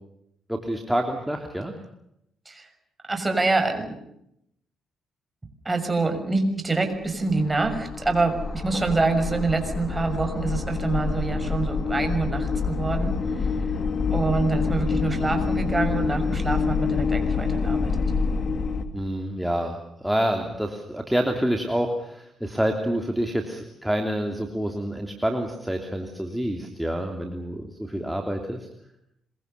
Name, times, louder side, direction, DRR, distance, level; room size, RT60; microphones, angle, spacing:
voice 1, 0.5-1.7 18.9-28.7, equal, 5° right, 3 dB, 3.2 m, -27 dB
voice 2, 3.1-4.0 5.6-18.0, right 3 dB, 20° right, 6 dB, 6.5 m, -26 dB
sound 1, 6.9-18.8, left 5 dB, 50° left, 3.2 m, -27 dB
26.5 x 23.0 x 6.9 m, 0.77 s
cardioid pair, 90°, 0 cm